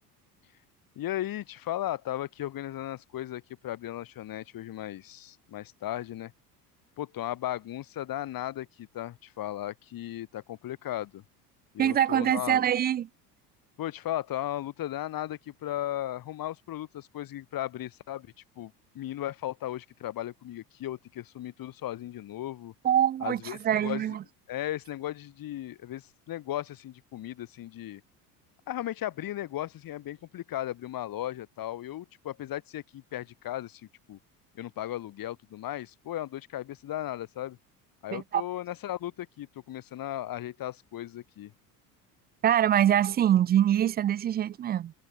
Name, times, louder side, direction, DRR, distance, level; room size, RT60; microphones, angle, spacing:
voice 1, 1.0-6.3 7.0-11.2 11.7-12.6 13.8-22.7 23.2-24.2 24.5-28.0 28.7-34.2 34.5-37.6 38.0-41.5, left 13 dB, 45° left, 3.0 m, -36 dB
voice 2, 11.8-13.1 22.8-24.2 38.1-38.4 42.4-44.9, right 10 dB, 20° right, 0.4 m, -24 dB
open air
hypercardioid pair, 70°, 47 cm